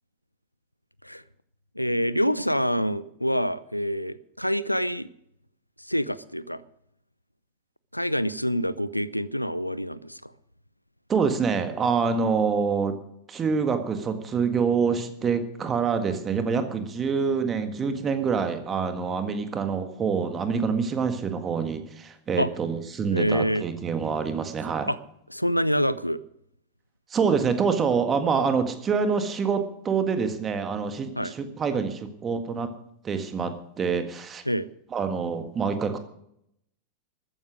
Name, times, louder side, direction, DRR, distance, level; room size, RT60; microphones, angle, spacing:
voice 1, 1.8-5.1 5.8-6.6 7.9-10.3 22.4-22.5 23.1-23.6 24.9-25.0 25.3-26.2 31.2-31.3 34.5-34.7, equal, 90° left, 18 dB, 0.5 m, -26 dB
voice 2, 11.1-12.9 13.3-24.9 27.1-32.7 33.0-34.4 34.9-36.0, right 5 dB, 20° right, 8 dB, 1.7 m, -26 dB
13.5 x 9.9 x 6.3 m, 0.75 s
figure-of-eight pair, 90°, 0 cm